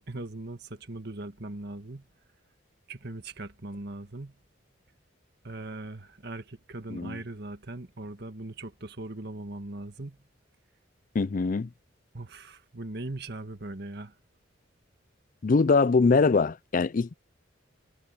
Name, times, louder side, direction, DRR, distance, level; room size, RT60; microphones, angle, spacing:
voice 1, 0.1-2.1 2.9-4.3 5.4-10.2 12.1-14.2, right 2 dB, 55° right, 1.8 m, -39 dB
voice 2, 11.1-11.7 15.4-17.1, left 4 dB, 45° left, 0.4 m, -23 dB
head